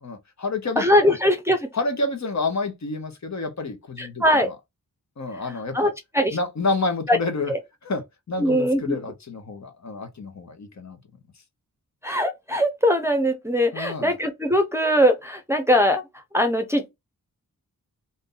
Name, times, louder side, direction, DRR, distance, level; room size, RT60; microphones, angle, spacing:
voice 1, 0.0-1.2 1.7-4.6 5.2-5.9 6.3-7.5 7.8-11.0 13.7-14.1, left 3 dB, 50° left, 1.0 m, -29 dB
voice 2, 0.8-1.7 4.0-4.5 5.7-6.4 7.1-7.2 7.5-7.6 8.4-9.0 12.0-16.0 16.3-16.9, equal, 5° right, 0.7 m, -21 dB
2.7 x 2.6 x 3.8 m
cardioid pair, 60°, 35 cm